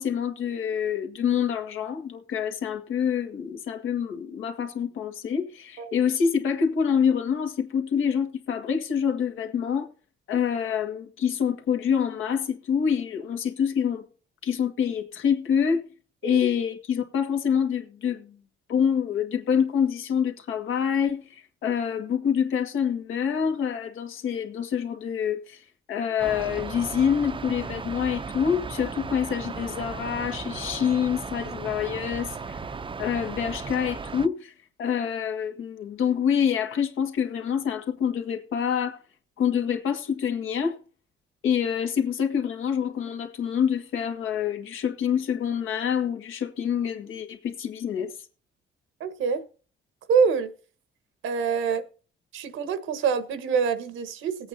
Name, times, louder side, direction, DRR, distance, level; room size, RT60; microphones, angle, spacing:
voice 1, 0.0-9.9 10.3-14.0 14.4-15.9 16.2-18.4 18.7-25.6 25.9-32.6 33.0-34.5 34.8-39.0 39.4-40.8 41.4-48.1, left 7 dB, 85° left, 1.9 m, -26 dB
sound 1, 26.2-34.3, right 4 dB, 25° right, 0.6 m, -36 dB
voice 2, 49.0-49.4 50.1-50.5 51.2-51.8 52.3-54.5, right 6 dB, 85° right, 1.4 m, -25 dB
20.5 x 8.6 x 2.8 m
cardioid pair, 90°, 20 cm